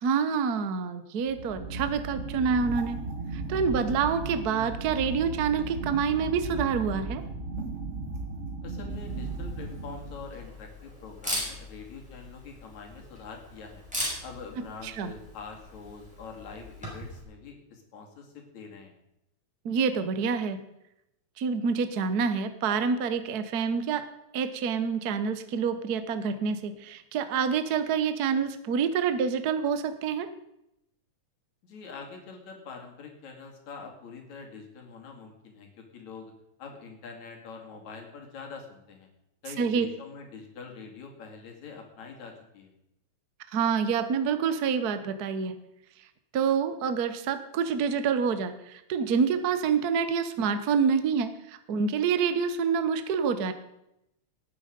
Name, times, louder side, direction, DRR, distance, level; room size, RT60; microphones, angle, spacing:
voice 1, 0.0-3.0 3.3-7.2 14.8-15.1 19.6-20.6 21.4-24.0 24.3-30.3 39.6-39.9 43.5-45.6 46.3-53.5, right 6 dB, 75° right, 10 dB, 0.8 m, -27 dB
sound 1, 1.2-10.4, right 3 dB, 40° right, 1.0 m, -36 dB
voice 2, 8.6-13.8 14.2-18.9 31.6-36.3 36.6-39.1 39.4-42.7, left 5 dB, 70° left, 1 dB, 3.8 m, -44 dB
Camera, 8.9-17.2, equal, ahead, 6.2 m, -40 dB
18.5 x 9.8 x 5.2 m, 0.84 s
omnidirectional pair, 3.4 m